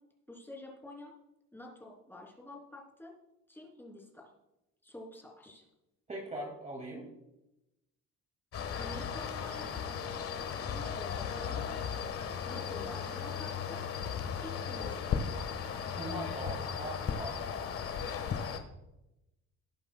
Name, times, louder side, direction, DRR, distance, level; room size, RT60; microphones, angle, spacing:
voice 1, 0.3-1.1 1.5-3.1 3.5-4.3 4.8-5.6 8.8-9.8 10.7-11.7 12.4-13.8 14.3-15.2, left 1 dB, 5° left, -1 dB, 3.1 m, -48 dB
voice 2, 6.1-7.1 15.9-17.8, right 1 dB, 25° right, 1 dB, 2.2 m, -41 dB
sound 1, 8.5-18.6, left 7 dB, 45° left, 1.4 m, -36 dB
18.5 x 8.8 x 2.2 m, 0.91 s
cardioid pair, 115°, 31 cm